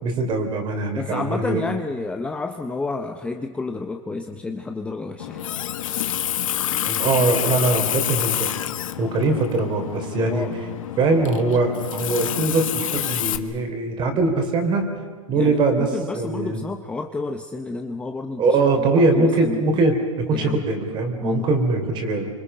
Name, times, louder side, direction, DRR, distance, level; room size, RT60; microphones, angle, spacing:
voice 1, 0.0-1.7 6.8-8.5 9.0-10.5 11.0-14.9 15.3-16.6 18.4-20.0 20.3-22.3, right 3 dB, 25° right, 6 dB, 3.6 m, -22 dB
voice 2, 0.9-5.5 10.3-10.5 15.3-19.8 20.3-20.7 21.2-21.5, left 3 dB, 5° left, 5 dB, 0.7 m, -30 dB
Water tap faucet, 5.2-13.4, left 12 dB, 75° left, 1.3 m, -27 dB
28.5 x 26.0 x 5.6 m, 1.5 s
hypercardioid pair, 145°, 17 cm